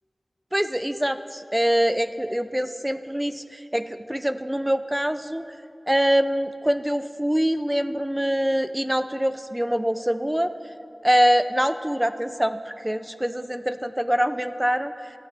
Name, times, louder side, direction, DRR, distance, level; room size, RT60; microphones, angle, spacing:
voice 1, 0.5-5.4 5.9-10.5 11.0-14.9, equal, 10° right, 11 dB, 0.4 m, -24 dB
14.5 x 10.0 x 3.4 m, 2.5 s
wide cardioid pair, 55°, 0 cm